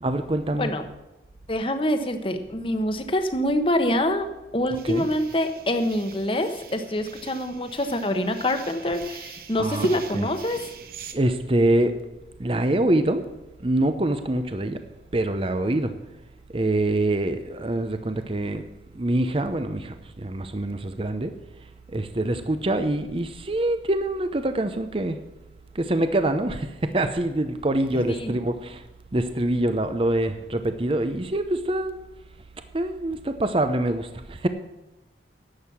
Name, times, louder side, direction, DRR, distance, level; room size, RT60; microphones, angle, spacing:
voice 1, 0.0-0.7 4.8-5.1 9.6-9.9 10.1-10.3 11.1-12.0 12.4-13.3 13.6-14.8 15.1-15.9 16.5-18.6 18.9-21.3 21.9-25.2 25.7-28.8 29.1-31.9 32.7-34.5, right 1 dB, 30° right, 9 dB, 0.7 m, -25 dB
voice 2, 1.5-4.3 4.5-10.7 27.9-28.3, left 1 dB, 30° left, 8 dB, 1.1 m, -25 dB
sound 1, 4.7-11.1, right 3 dB, 55° right, 1.1 m, -41 dB
11.5 x 7.8 x 8.5 m, 1.0 s
head